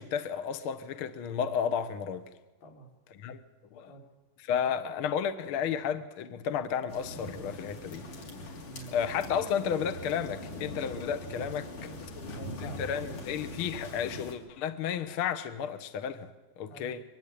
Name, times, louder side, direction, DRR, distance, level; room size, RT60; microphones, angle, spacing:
voice 1, 0.0-2.3 3.2-3.4 3.7-3.9 4.4-8.1 8.9-11.7 12.6-17.0, left 8 dB, 70° left, 1.2 m, -32 dB
sound 1, 6.9-14.3, left 1 dB, 55° left, 4.6 m, -42 dB
voice 2, 11.8-12.8 16.6-16.9, right 1 dB, 85° left, 6.1 m, -47 dB
24.0 x 22.5 x 8.7 m
omnidirectional pair, 4.4 m